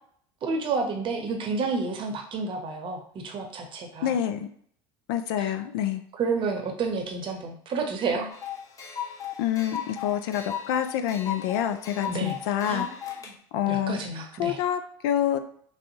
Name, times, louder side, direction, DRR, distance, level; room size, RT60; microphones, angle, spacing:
voice 1, 0.4-4.2 5.4-5.5 6.1-8.3 12.1-12.4 12.6-12.9 13.2-13.3 13.7-14.6, right 4 dB, 40° right, 4 dB, 0.8 m, -30 dB
voice 2, 4.0-4.5 5.1-6.0 9.4-12.9 13.5-14.0 14.4-15.4, left 10 dB, 75° left, 9 dB, 0.4 m, -27 dB
sound 1, 8.3-13.3, left 9 dB, 25° left, 0.6 m, -36 dB
3.3 x 2.6 x 2.7 m, 0.62 s
supercardioid pair, 90°, 13 cm